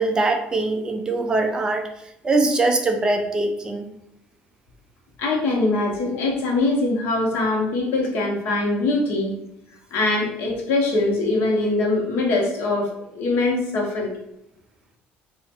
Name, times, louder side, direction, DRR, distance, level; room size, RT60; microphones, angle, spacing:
voice 1, 0.0-1.8 2.2-3.8, right 2 dB, 20° right, 5 dB, 0.3 m, -22 dB
voice 2, 5.2-9.3 9.9-14.1, left 2 dB, 65° left, 0 dB, 1.0 m, -22 dB
3.1 x 2.4 x 4.3 m, 0.85 s
cardioid pair, 170°, 4 cm